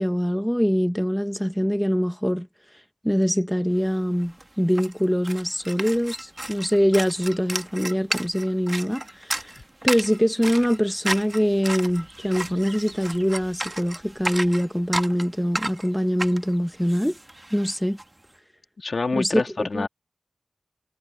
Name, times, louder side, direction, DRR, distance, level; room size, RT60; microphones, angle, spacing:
voice 1, 0.0-2.5 3.0-9.5 9.8-17.2 17.5-18.0 19.2-19.9, equal, ahead, 0.9 m, -23 dB
sound 1, 3.9-4.0 4.2-18.0, right 1 dB, 25° right, 1.3 m, -33 dB
voice 2, 18.8-19.9, left 3 dB, 65° left, 1.6 m, -26 dB
wide cardioid pair, 85°, 0 cm